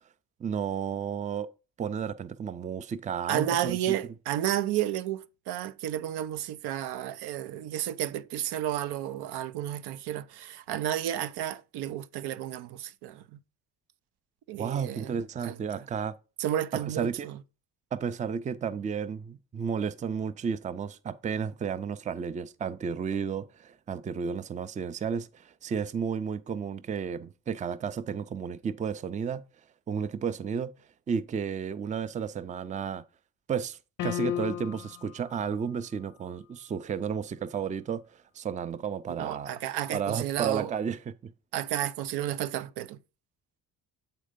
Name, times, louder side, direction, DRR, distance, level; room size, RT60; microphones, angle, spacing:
voice 1, 0.4-1.5 1.8-3.9 14.6-16.1 16.8-17.3 17.9-29.4 29.9-30.7 31.1-33.0 33.5-38.0 38.4-39.6 39.9-41.3, right 7 dB, 20° right, 0.4 m, -32 dB
voice 2, 3.3-13.4 14.5-15.8 16.4-17.4 39.2-40.7 41.5-43.0, right 12 dB, 85° right, 0.6 m, -32 dB
sound 1, 34.0-35.1, left 12 dB, 55° left, 0.5 m, -32 dB
7.5 x 4.4 x 5.0 m
cardioid pair, 125°, 38 cm